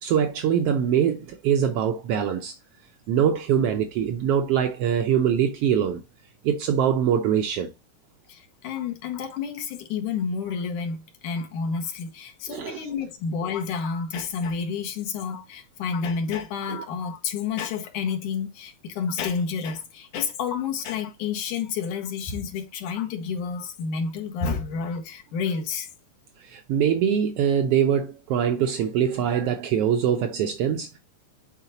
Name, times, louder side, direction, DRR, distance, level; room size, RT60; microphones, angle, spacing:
voice 1, 0.0-2.5 3.1-6.0 6.4-7.7 12.5-12.8 26.4-31.0, right 8 dB, 75° right, 1.4 m, -23 dB
voice 2, 8.3-25.9, left 6 dB, 75° left, 2.9 m, -30 dB
10.5 x 4.0 x 2.7 m
omnidirectional pair, 3.6 m